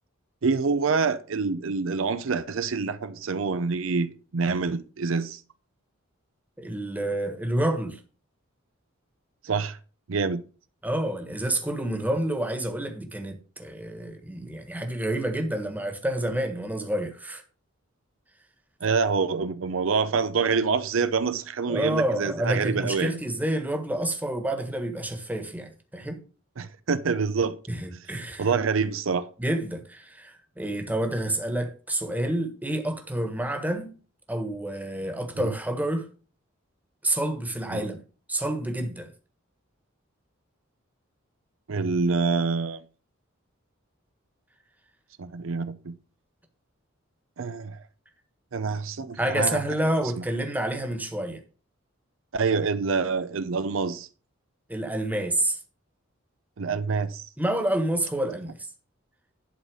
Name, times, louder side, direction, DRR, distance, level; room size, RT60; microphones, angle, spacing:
voice 1, 0.4-5.4 9.4-9.8 10.1-10.4 18.8-23.1 26.6-27.6 28.4-29.3 35.4-35.5 37.7-37.9 41.7-42.8 45.2-45.9 47.4-47.8 48.5-49.6 50.2-50.3 52.3-54.1 56.6-57.3, right 4 dB, 75° right, 0.6 m, -26 dB
voice 2, 6.6-8.0 10.8-17.4 21.7-26.2 27.7-28.5 29.4-33.9 34.3-36.1 37.0-38.0 38.3-39.1 49.2-51.4 54.7-55.6 57.4-58.6, right 1 dB, 10° right, 1.4 m, -28 dB
11.5 x 4.1 x 6.4 m
head